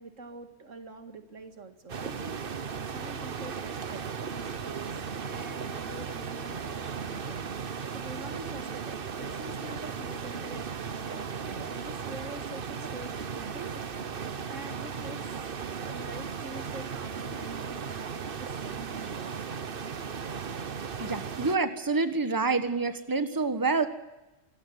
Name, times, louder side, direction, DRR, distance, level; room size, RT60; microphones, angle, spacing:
voice 1, 0.0-2.4 2.8-7.5 7.9-13.9 14.5-15.3 15.8-19.9, right 2 dB, 90° right, 8 dB, 2.5 m, -45 dB
sound 1, 1.9-21.6, right 6 dB, 50° right, 1.1 m, -36 dB
voice 2, 21.0-23.9, right 4 dB, 15° right, 10 dB, 1.4 m, -27 dB
25.5 x 15.0 x 9.5 m, 1.0 s
omnidirectional pair, 1.3 m